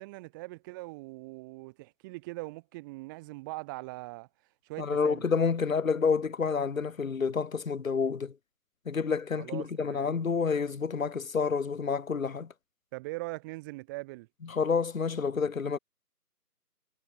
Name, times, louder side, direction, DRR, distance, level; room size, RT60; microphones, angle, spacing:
voice 1, 0.0-4.3 4.6-5.3 9.4-10.1 12.9-14.3, right 23 dB, 10° right, 6.7 m, -41 dB
voice 2, 4.8-8.3 8.9-12.5 14.5-15.8, left 5 dB, 55° left, 1.1 m, -29 dB
figure-of-eight pair, 165°, 49 cm